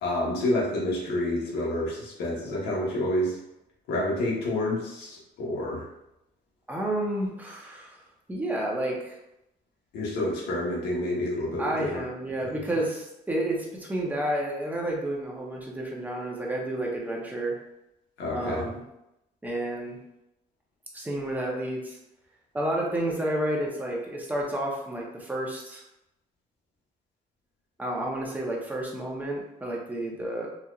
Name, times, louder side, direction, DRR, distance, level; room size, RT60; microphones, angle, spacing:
voice 1, 0.0-3.4 3.9-5.9 9.9-12.1 18.2-18.7, left 1 dB, 80° left, -4 dB, 1.3 m, -28 dB
voice 2, 6.7-8.0 8.3-9.2 11.6-17.6 18.3-18.8 19.4-20.0 20.9-22.0 22.5-25.8 27.8-30.5, right 1 dB, 10° right, -2 dB, 0.9 m, -30 dB
4.2 x 2.8 x 2.5 m, 0.86 s
cardioid pair, 110°, 17 cm